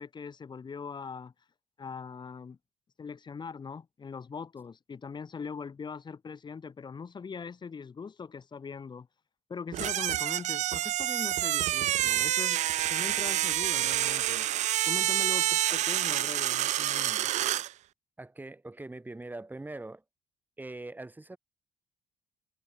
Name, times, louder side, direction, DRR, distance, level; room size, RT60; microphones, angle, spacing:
voice 1, 0.0-1.3 1.8-2.6 3.0-9.1 9.5-12.6 12.9-14.5 14.9-17.3, left 5 dB, 35° left, 4.7 m, -41 dB
sound 1, 9.7-17.7, right 13 dB, 65° right, 0.7 m, -28 dB
voice 2, 18.2-20.0 20.6-21.4, right 2 dB, 15° right, 6.1 m, -42 dB
cardioid pair, 90°, 13 cm